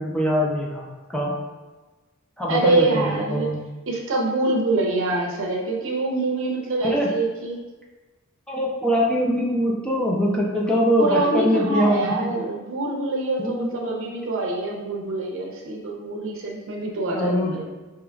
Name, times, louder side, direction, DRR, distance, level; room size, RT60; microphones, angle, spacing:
voice 1, 0.0-1.3 2.4-3.6 6.8-7.1 8.5-12.3 13.4-14.0 17.1-17.6, equal, 5° left, -3 dB, 0.5 m, -23 dB
voice 2, 2.5-3.5 3.9-7.6 11.0-17.6, right 2 dB, 65° right, -1 dB, 0.7 m, -25 dB
4.6 x 3.0 x 2.3 m, 1.2 s
head